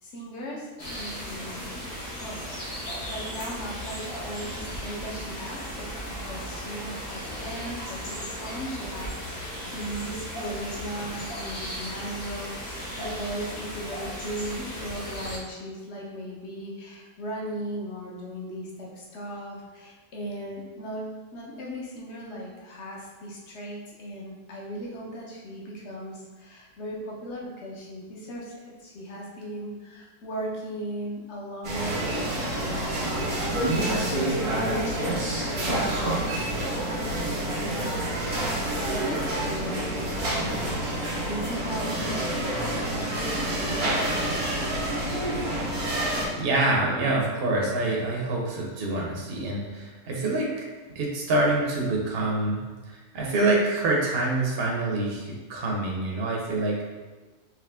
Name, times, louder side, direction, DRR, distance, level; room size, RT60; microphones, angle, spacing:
voice 1, 0.0-1.9 2.2-2.7 3.0-32.3 32.5-33.0 34.3-36.5 36.8-40.8 41.1-45.0, equal, 50° left, -3 dB, 1.2 m, -37 dB
sound 1, 0.8-15.4, equal, 75° left, 1.6 m, -36 dB
sound 2, 31.6-46.3, right 1 dB, 75° right, 1.7 m, -28 dB
voice 2, 45.3-45.7 46.3-52.6 52.9-56.8, right 2 dB, 45° right, -2 dB, 1.0 m, -26 dB
4.9 x 3.1 x 3.5 m, 1.3 s
omnidirectional pair, 1.6 m